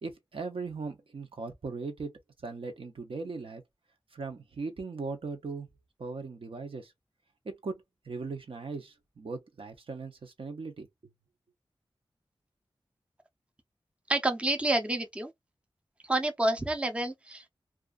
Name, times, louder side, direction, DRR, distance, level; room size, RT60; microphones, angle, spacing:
voice 1, 0.0-3.6 4.1-5.7 6.0-6.9 7.4-11.1, right 4 dB, 70° right, 0.7 m, -39 dB
voice 2, 14.1-15.3 16.1-17.5, right 1 dB, 10° right, 0.5 m, -28 dB
2.4 x 2.3 x 2.3 m
wide cardioid pair, 85°, 9 cm